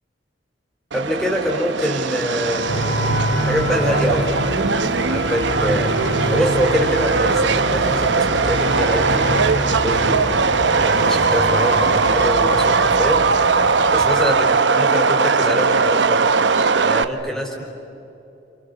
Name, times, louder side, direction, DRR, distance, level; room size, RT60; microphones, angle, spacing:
voice 1, 0.9-2.8 3.4-4.5 5.1-6.0 6.3-9.2 9.6-13.4 13.8-16.2 16.8-17.6, equal, 5° left, 0 dB, 4.5 m, -24 dB
Subway metro underground, 0.9-17.0, right 4 dB, 75° right, 0.9 m, -19 dB
sound 1, 2.7-14.3, equal, 70° left, 4.1 m, -26 dB
30.0 x 28.5 x 6.9 m, 2.9 s
head